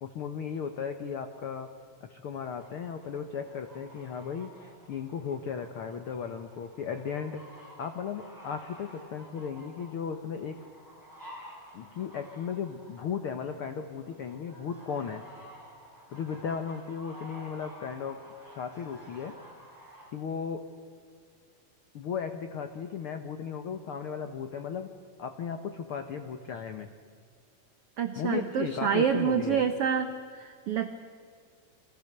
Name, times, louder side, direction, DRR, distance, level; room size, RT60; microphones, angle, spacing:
voice 1, 0.0-1.7 2.0-7.4 7.8-10.6 11.7-15.2 16.1-18.2 18.4-19.4 20.1-20.6 21.9-24.9 25.2-26.9 28.2-29.7, left 7 dB, 90° left, 7 dB, 1.2 m, -36 dB
sound 1, 2.6-20.1, equal, 5° right, 6.0 m, -51 dB
voice 2, 28.0-30.1 30.4-30.9, right 7 dB, 80° right, 8 dB, 1.3 m, -27 dB
29.5 x 23.5 x 6.8 m, 2.2 s
omnidirectional pair, 4.1 m